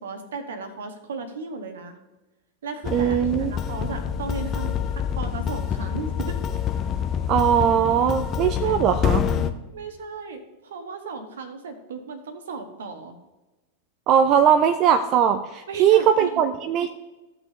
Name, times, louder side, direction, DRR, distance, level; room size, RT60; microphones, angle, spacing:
voice 1, 0.0-2.0 2.6-6.4 8.6-8.8 9.7-13.2 15.7-16.3, right 4 dB, 65° right, 7 dB, 1.3 m, -35 dB
sound 1, 2.8-9.5, left 8 dB, 30° left, 0.7 m, -27 dB
voice 2, 2.9-3.5 7.3-9.2 14.1-16.9, right 8 dB, 35° right, 9 dB, 0.5 m, -20 dB
15.5 x 5.9 x 3.0 m, 1.1 s
figure-of-eight pair, 90°, 0 cm